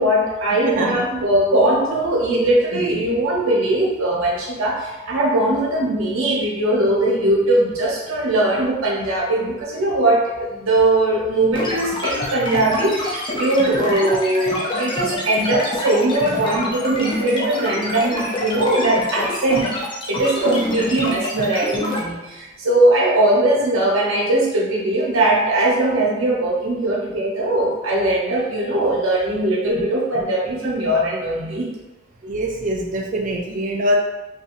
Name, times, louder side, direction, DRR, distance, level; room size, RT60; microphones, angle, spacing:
voice 1, 0.0-19.6 20.1-31.7, right 1 dB, 80° right, -3 dB, 0.8 m, -20 dB
voice 2, 0.6-1.0 2.7-2.8 20.9-21.0 32.2-34.0, right 1 dB, 40° right, 0 dB, 0.4 m, -23 dB
sound 1, 11.5-22.0, left 1 dB, 25° left, 0.5 m, -27 dB
2.9 x 2.6 x 2.5 m, 1.1 s
head